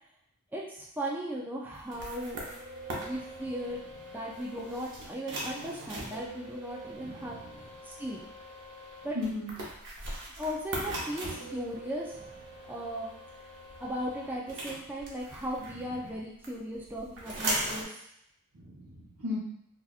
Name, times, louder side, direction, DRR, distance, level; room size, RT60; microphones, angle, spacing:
voice 1, 0.5-2.4 2.9-3.8 4.1-7.4 7.8-8.2 9.0-9.2 10.4-12.3 12.7-13.1 13.8-17.9, equal, 10° right, -3 dB, 0.4 m, -37 dB
sound 1, 1.8-16.1 16.4-17.8, right 1 dB, 60° right, 0.8 m, -40 dB
voice 2, 7.0-7.7 9.1-9.5 16.0-16.1 18.5-19.4, left 3 dB, 80° right, -4 dB, 1.1 m, -37 dB
4.0 x 2.4 x 2.4 m, 0.74 s
head